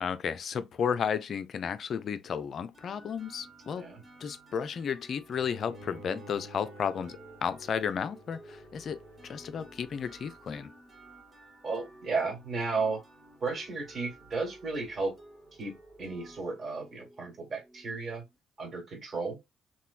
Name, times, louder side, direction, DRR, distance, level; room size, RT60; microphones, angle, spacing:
voice 1, 0.0-3.9 4.2-9.0 9.3-10.7, left 7 dB, 50° left, 0.3 m, -33 dB
sound 1, 2.7-18.4, right 2 dB, 25° right, 1.1 m, -54 dB
Bowed string instrument, 5.3-10.6, equal, 80° right, 0.9 m, -52 dB
voice 2, 11.6-13.0 13.4-15.1 15.6-18.2 18.6-19.4, right 4 dB, 40° right, 1.4 m, -34 dB
3.0 x 2.1 x 2.4 m
hypercardioid pair, 50°, 0 cm